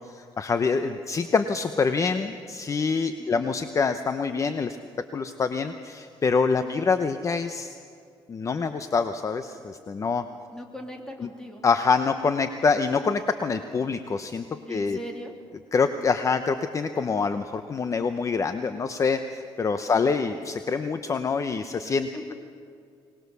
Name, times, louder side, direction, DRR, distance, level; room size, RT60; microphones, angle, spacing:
voice 1, 0.0-4.8 5.1-7.7 8.3-10.2 11.6-14.4 14.7-15.0 15.7-22.1, left 5 dB, 30° left, 9 dB, 0.8 m, -25 dB
voice 2, 3.2-3.5 6.6-6.9 10.5-11.6 14.7-15.3 15.9-16.1 22.1-22.3, equal, 5° left, 2 dB, 2.9 m, -40 dB
24.0 x 19.5 x 6.9 m, 2.3 s
cardioid pair, 125°, 10 cm